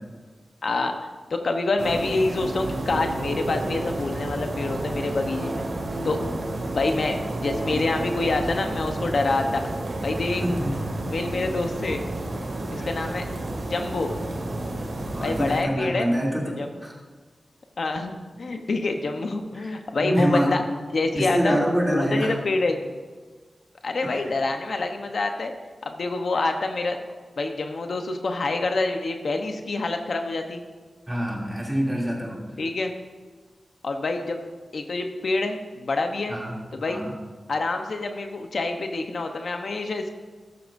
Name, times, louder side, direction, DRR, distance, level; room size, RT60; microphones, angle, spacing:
voice 1, 0.6-0.9 1.3-5.7 6.0-6.2 6.7-7.2 7.4-9.7 10.0-10.4 11.1-12.0 12.7-13.2 13.7-14.1 15.2-16.1 16.6-16.7 17.8-18.1 18.4-20.6 20.9-21.6 21.9-22.8 23.8-25.5 25.8-27.0 27.4-30.6 32.6-32.9 33.8-34.4 34.7-36.3 36.7-37.0 37.5-40.1, left 3 dB, 70° left, 5 dB, 0.9 m, -26 dB
sound 1, 1.8-15.6, right 1 dB, 65° right, 2.2 m, -31 dB
voice 2, 10.4-10.8 12.8-12.9 15.1-16.9 19.5-20.5 21.1-22.4 24.0-24.3 31.1-32.4 36.3-36.6 36.9-37.1, equal, 10° right, -3 dB, 2.8 m, -26 dB
14.0 x 12.5 x 2.6 m, 1.5 s
wide cardioid pair, 105°, 0 cm